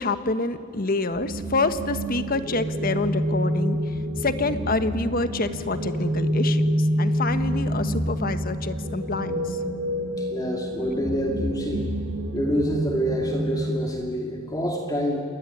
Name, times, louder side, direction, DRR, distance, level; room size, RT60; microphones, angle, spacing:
voice 1, 0.0-3.8 4.2-9.6, left 3 dB, 45° left, 10 dB, 1.4 m, -27 dB
sound 1, 1.1-13.8, equal, 55° right, 5.0 m, -27 dB
voice 2, 10.2-11.9 12.3-15.2, equal, 20° left, 0 dB, 2.5 m, -27 dB
28.5 x 21.0 x 9.9 m, 2.3 s
head